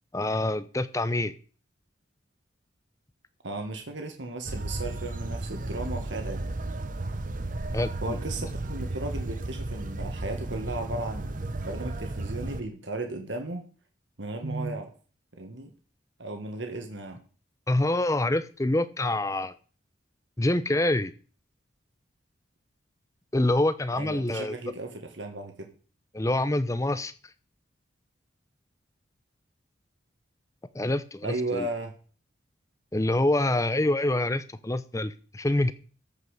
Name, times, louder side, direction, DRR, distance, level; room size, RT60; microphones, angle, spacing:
voice 1, 0.1-1.3 7.7-8.2 17.7-19.5 20.4-21.1 23.3-24.6 26.1-27.1 30.7-31.7 32.9-35.7, left 1 dB, 15° left, 13 dB, 0.6 m, -26 dB
voice 2, 3.4-6.6 8.0-13.6 14.2-14.9 15.3-15.7 16.2-17.2 23.9-25.5 31.2-31.9, right 2 dB, 70° right, 4 dB, 1.7 m, -35 dB
sound 1, 4.5-12.6, right 2 dB, 45° right, 0.9 m, -34 dB
13.5 x 5.6 x 6.5 m, 0.40 s
head